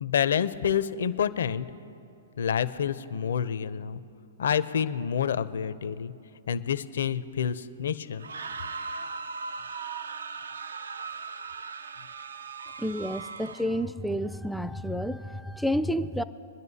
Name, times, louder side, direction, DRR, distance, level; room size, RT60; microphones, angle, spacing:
voice 1, 0.0-1.7 2.4-4.0 4.4-6.1 6.5-8.3, left 8 dB, 70° left, 14 dB, 0.5 m, -28 dB
sound 1, 8.1-13.9, right 4 dB, 80° right, 0.5 m, -38 dB
voice 2, 12.8-16.2, equal, ahead, 13 dB, 0.3 m, -30 dB
23.5 x 10.5 x 2.8 m, 2.6 s
hypercardioid pair, 120°, 0 cm